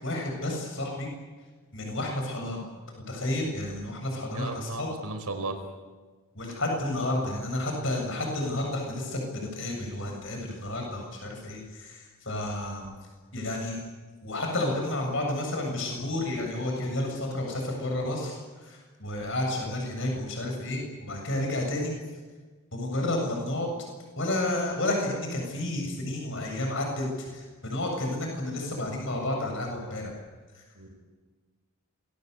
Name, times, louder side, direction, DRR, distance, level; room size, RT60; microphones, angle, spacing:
voice 1, 0.0-1.1 1.7-2.6 3.1-4.9 6.3-12.9 13.3-13.8 14.2-21.9 22.7-23.7 24.1-30.2 30.5-30.6, left 1 dB, 55° left, 1 dB, 7.6 m, -31 dB
voice 2, 4.3-5.6 30.7-30.9, right 3 dB, 90° right, 6 dB, 4.8 m, -35 dB
27.0 x 21.5 x 8.4 m, 1.4 s
head